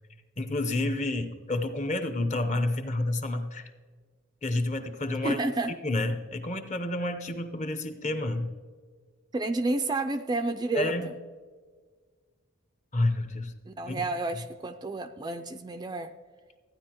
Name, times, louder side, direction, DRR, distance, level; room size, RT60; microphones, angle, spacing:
voice 1, 0.4-3.7 4.4-5.4 5.8-8.5 10.7-11.1 12.9-13.5 13.9-14.0, left 2 dB, 35° left, 8 dB, 0.8 m, -29 dB
voice 2, 5.2-5.7 9.3-11.1 13.7-16.1, right 2 dB, 20° right, 8 dB, 0.3 m, -30 dB
14.5 x 9.8 x 3.0 m, 1.5 s
head